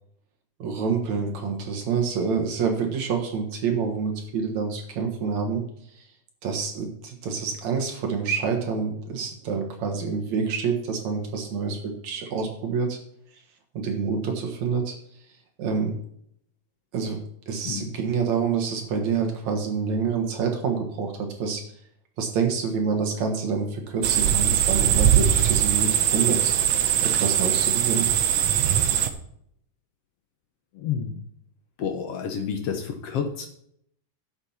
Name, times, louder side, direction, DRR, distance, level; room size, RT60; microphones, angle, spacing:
voice 1, 0.6-5.6 5.9-6.0 6.4-13.0 13.7-15.0 15.6-15.9 16.9-17.2 17.5-21.6 22.2-26.5 27.0-28.1, right 5 dB, 60° right, 2 dB, 2.4 m, -27 dB
sound 1, 24.0-29.1, right 10 dB, 80° right, 1.4 m, -21 dB
voice 2, 30.8-31.2 31.8-33.5, left 7 dB, 65° left, 4 dB, 1.5 m, -29 dB
11.5 x 8.0 x 4.3 m, 0.70 s
omnidirectional pair, 4.0 m